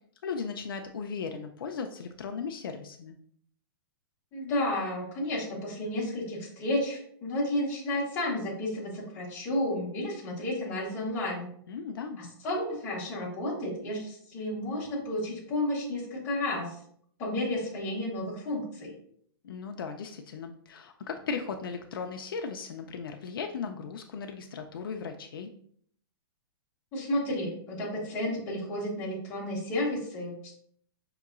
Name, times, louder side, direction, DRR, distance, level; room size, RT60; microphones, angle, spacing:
voice 1, 0.2-3.2 11.7-12.2 19.4-25.5, left 5 dB, 60° left, 5 dB, 0.4 m, -37 dB
voice 2, 4.3-11.5 12.2-16.8 17.2-18.9 26.9-30.5, left 1 dB, 15° left, -5 dB, 0.8 m, -32 dB
5.3 x 2.8 x 2.4 m, 0.63 s
hypercardioid pair, 180°, 13 cm